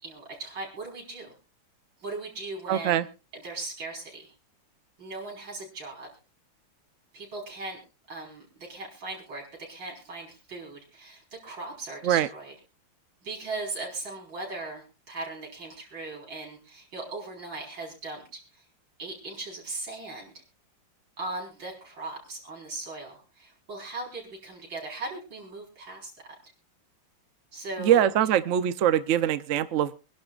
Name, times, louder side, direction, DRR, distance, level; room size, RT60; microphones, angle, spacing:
voice 1, 0.0-1.3 2.0-3.1 3.3-4.3 5.0-6.1 7.1-7.8 8.1-9.4 9.7-12.5 13.2-18.2 18.5-18.6 19.0-20.4 21.2-26.1 27.5-28.3, right 2 dB, 60° right, -2 dB, 5.5 m, -38 dB
voice 2, 2.7-3.1 12.0-12.3 27.8-29.9, right 10 dB, 85° right, 12 dB, 0.6 m, -23 dB
25.5 x 11.5 x 2.4 m, 0.31 s
omnidirectional pair, 2.3 m